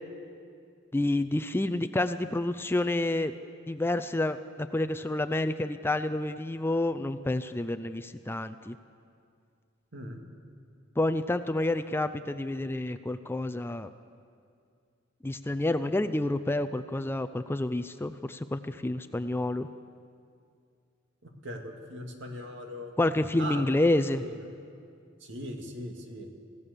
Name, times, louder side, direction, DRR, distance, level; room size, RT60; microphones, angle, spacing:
voice 1, 0.9-3.3 3.7-8.8 11.0-13.9 15.2-19.7 23.0-24.2, left 1 dB, 10° left, 9 dB, 0.5 m, -29 dB
voice 2, 21.2-22.9 23.4-23.6 24.2-24.4 25.2-26.3, equal, 65° right, 3 dB, 2.3 m, -39 dB
26.0 x 16.0 x 6.8 m, 2.3 s
head